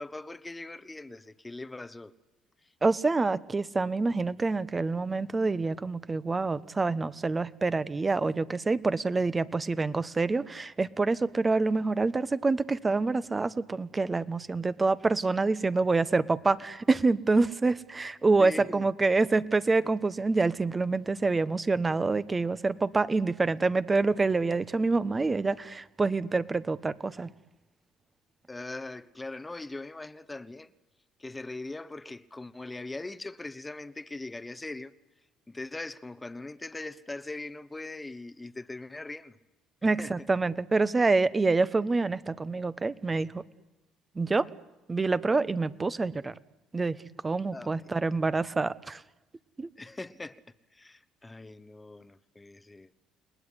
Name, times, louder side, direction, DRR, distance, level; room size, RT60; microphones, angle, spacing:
voice 1, 0.0-2.1 18.4-18.9 28.5-30.7 31.2-34.9 35.5-39.4 39.8-40.1 47.5-47.7 49.8-50.4 50.7-52.9, left 2 dB, 15° left, 1.1 m, -41 dB
voice 2, 2.8-27.3 39.8-43.4 44.1-44.5 44.9-46.3 46.7-47.0 47.2-49.0 49.6-49.7, right 3 dB, 25° right, 1.2 m, -27 dB
29.5 x 19.5 x 9.9 m
supercardioid pair, 75°, 0 cm